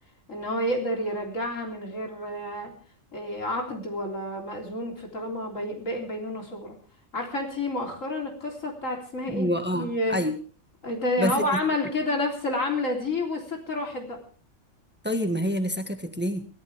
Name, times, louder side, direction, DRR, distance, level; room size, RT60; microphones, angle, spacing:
voice 1, 0.3-2.7 3.1-6.8 7.1-10.2 10.8-14.2, left 1 dB, 90° left, 1 dB, 4.1 m, -29 dB
voice 2, 9.3-10.3 11.2-11.6 15.0-16.5, equal, 10° right, 6 dB, 1.6 m, -27 dB
22.5 x 14.5 x 3.5 m, 0.40 s
omnidirectional pair, 1.3 m